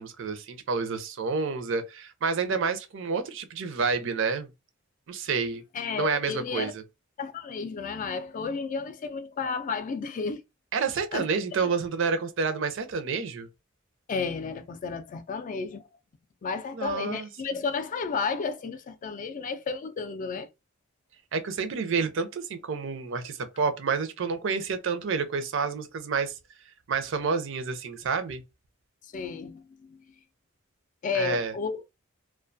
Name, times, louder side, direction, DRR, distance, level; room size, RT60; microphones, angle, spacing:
voice 1, 0.0-4.5 5.1-5.6 5.9-6.7 10.7-13.5 16.7-17.3 21.3-26.3 26.9-28.4 31.1-31.5, right 5 dB, 65° right, 0.5 m, -29 dB
voice 2, 5.7-6.7 7.2-10.4 11.1-11.3 11.6-11.7 14.1-15.9 16.4-20.5 29.0-29.6 29.9-30.0 31.0-31.9, left 5 dB, 40° left, 0.3 m, -32 dB
2.3 x 2.2 x 2.5 m
head